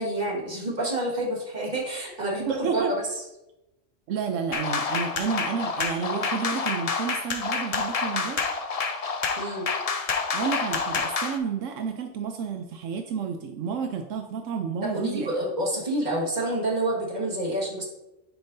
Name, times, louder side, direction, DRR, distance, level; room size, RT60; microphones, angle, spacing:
voice 1, 0.0-3.0 9.4-9.7 14.8-17.8, right 1 dB, 35° right, -3 dB, 1.9 m, -28 dB
voice 2, 2.5-2.9 4.1-8.4 10.3-15.3, right 6 dB, 80° right, 5 dB, 1.0 m, -30 dB
sound 1, 4.5-11.4, left 5 dB, 45° left, 0.5 m, -28 dB
10.5 x 5.3 x 2.7 m, 0.93 s
omnidirectional pair, 1.3 m